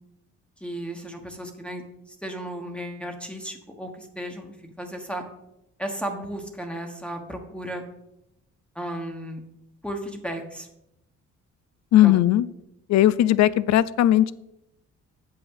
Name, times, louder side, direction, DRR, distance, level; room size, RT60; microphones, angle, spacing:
voice 1, 0.6-5.2 5.8-7.8 8.7-9.4 9.8-10.7 12.0-12.2, right 1 dB, 5° left, 2 dB, 1.3 m, -34 dB
voice 2, 11.9-12.5 12.9-14.3, left 13 dB, 65° left, 19 dB, 0.5 m, -18 dB
8.1 x 5.7 x 5.6 m, 0.83 s
cardioid pair, 90°, 30 cm